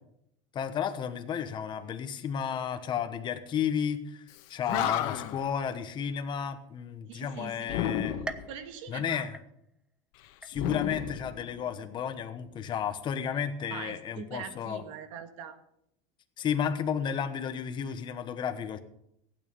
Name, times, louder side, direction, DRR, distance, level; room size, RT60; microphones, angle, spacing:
voice 1, 0.5-8.1 8.9-9.4 10.4-14.8 16.4-18.8, left 8 dB, 30° left, 8 dB, 1.1 m, -32 dB
Animal, 4.3-4.4 4.7-5.5 7.7-8.5 10.5-11.9, left 11 dB, 65° left, 1.3 m, -32 dB
voice 2, 7.1-7.8 8.5-9.3 13.7-15.6, right 7 dB, 80° right, 8 dB, 1.7 m, -42 dB
sound 1, 8.3-10.0 10.4-11.0 11.5-11.6 12.6-12.7, right 2 dB, 5° right, 0.5 m, -44 dB
15.5 x 8.9 x 5.4 m, 0.75 s
cardioid pair, 160°, 17 cm